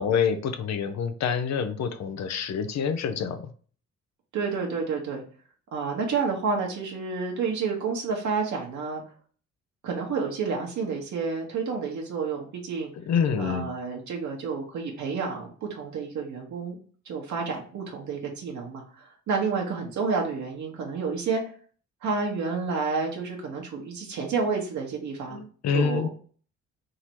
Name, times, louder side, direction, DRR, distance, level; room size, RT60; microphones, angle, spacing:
voice 1, 0.0-3.5 13.1-13.7 25.3-26.1, left 7 dB, 60° left, 9 dB, 0.7 m, -27 dB
voice 2, 4.3-5.2 5.7-9.0 9.8-12.9 13.4-16.8 17.0-21.4 22.0-25.4 25.7-26.1, right 5 dB, 70° right, 0 dB, 1.3 m, -30 dB
3.8 x 2.9 x 4.5 m, 0.44 s
cardioid pair, 90°, 30 cm